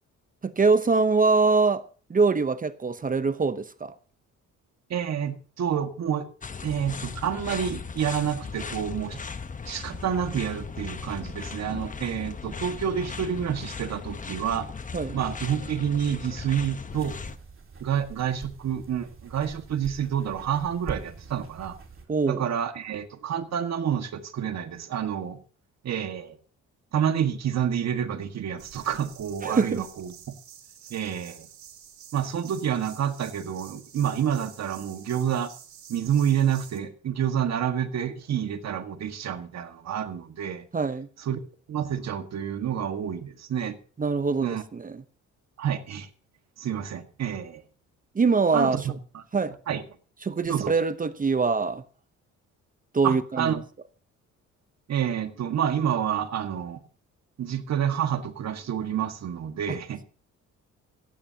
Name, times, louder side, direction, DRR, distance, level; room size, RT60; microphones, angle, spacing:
voice 1, 0.4-1.8 2.1-3.9 14.9-15.1 22.1-22.4 29.4-29.8 40.7-41.1 44.0-44.9 48.1-48.8 49.3-49.5 50.2-51.8 52.9-53.5, right 4 dB, 25° right, 0.9 m, -23 dB
voice 2, 4.9-6.3 6.6-9.2 9.7-14.7 15.1-17.1 17.8-21.8 22.3-25.4 25.8-26.4 26.9-30.2 30.9-31.5 32.1-35.5 35.9-40.7 41.2-41.4 41.7-43.8 44.4-44.6 45.6-46.1 46.6-47.6 48.5-49.2 49.7-49.8 50.5-50.7 53.0-53.6 54.9-56.8 57.4-60.0, right 9 dB, 60° right, 1.8 m, -28 dB
sound 1, 6.4-17.4, left 5 dB, 25° left, 1.0 m, -37 dB
sound 2, 16.9-22.0, right 5 dB, 45° right, 3.4 m, -44 dB
sound 3, 28.6-36.8, right 9 dB, 75° right, 3.1 m, -49 dB
16.0 x 15.5 x 2.9 m
cardioid pair, 90°, 30 cm